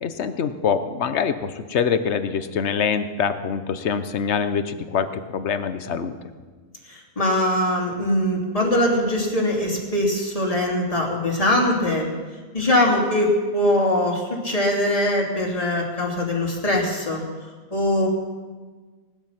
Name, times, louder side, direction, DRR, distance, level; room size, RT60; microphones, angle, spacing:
voice 1, 0.0-6.2, left 6 dB, 50° left, 11 dB, 1.0 m, -24 dB
voice 2, 6.9-12.1 12.5-17.2 17.7-18.1, left 1 dB, 20° left, -2 dB, 2.9 m, -22 dB
18.5 x 12.0 x 5.8 m, 1.4 s
omnidirectional pair, 1.7 m